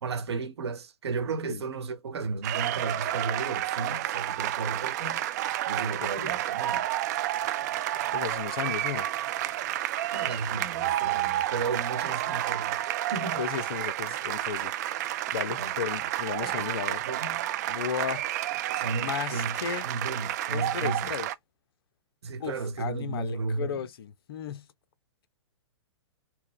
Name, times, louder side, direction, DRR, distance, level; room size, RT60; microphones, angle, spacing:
voice 1, 0.0-5.2 5.7-6.9 10.1-13.4 15.5-15.7 16.4-17.4 18.7-21.1 22.2-23.8, right 4 dB, 60° right, 0.9 m, -34 dB
sound 1, 2.4-21.3, right 13 dB, 35° right, 0.3 m, -30 dB
voice 2, 8.1-9.1 13.4-17.0 17.7-18.3 19.0-19.8 20.5-21.3 22.4-24.7, left 8 dB, 55° left, 0.5 m, -35 dB
4.3 x 2.1 x 3.6 m
figure-of-eight pair, 115°, 15 cm